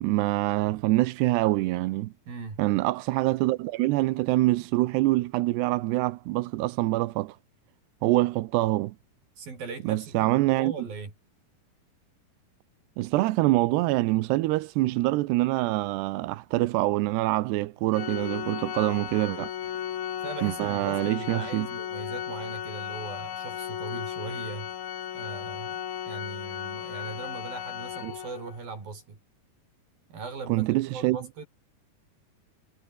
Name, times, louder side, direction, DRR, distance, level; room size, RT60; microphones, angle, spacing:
voice 1, 0.0-2.1 2.6-7.4 8.0-9.0 9.9-10.7 13.0-19.5 20.4-21.7 28.0-28.1 30.5-31.2, right 18 dB, 90° right, 3.0 m, -25 dB
voice 2, 2.3-2.6 9.4-11.1 20.2-24.7 25.1-29.2 30.1-31.5, right 4 dB, 60° right, 8.4 m, -39 dB
Organ, 17.9-28.6, left 10 dB, 65° left, 3.9 m, -35 dB
omnidirectional pair, 4.7 m